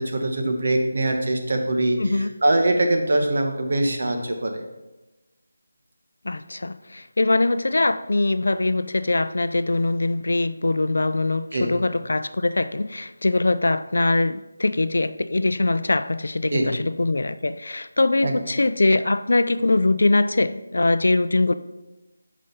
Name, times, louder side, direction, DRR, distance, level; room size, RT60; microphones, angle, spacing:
voice 1, 0.0-4.6 11.5-11.7 16.5-16.7 18.2-18.4, right 1 dB, 45° right, 4 dB, 1.0 m, -23 dB
voice 2, 2.0-2.3 6.2-21.5, left 2 dB, 65° left, 13 dB, 0.4 m, -22 dB
6.5 x 5.1 x 5.5 m, 1.1 s
figure-of-eight pair, 180°, 0 cm